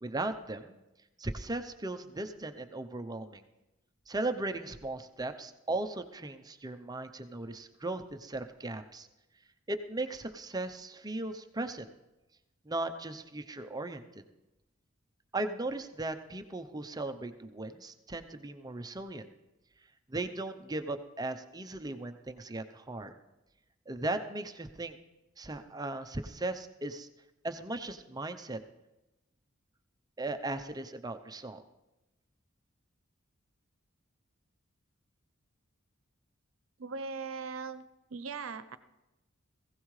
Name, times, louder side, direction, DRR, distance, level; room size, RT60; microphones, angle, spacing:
voice 1, 0.0-0.8 1.2-3.4 4.1-9.1 9.7-11.9 12.6-14.2 15.3-19.3 20.1-23.1 23.9-25.0 25.4-27.1 27.4-28.6 30.2-31.6, right 2 dB, 20° right, 8 dB, 0.7 m, -37 dB
voice 2, 36.8-37.8 38.1-38.8, right 4 dB, 75° right, 13 dB, 0.8 m, -39 dB
19.5 x 16.0 x 3.2 m, 0.99 s
head